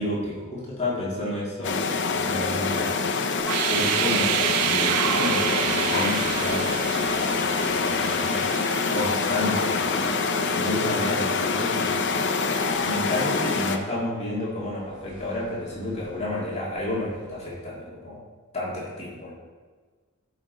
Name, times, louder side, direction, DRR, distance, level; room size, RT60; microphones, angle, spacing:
voice 1, 0.0-2.9 3.4-6.7 7.0-8.4 8.9-10.1 10.4-12.1 12.8-18.2 18.5-19.3, left 1 dB, 30° left, -6 dB, 2.0 m, -31 dB
sound 1, 1.6-13.8, left 4 dB, 50° left, 0.6 m, -25 dB
sound 2, 3.4-10.3, right 12 dB, 90° right, 0.3 m, -29 dB
sound 3, 12.5-17.6, left 4 dB, 5° right, 2.0 m, -43 dB
12.5 x 5.1 x 3.9 m, 1.4 s
head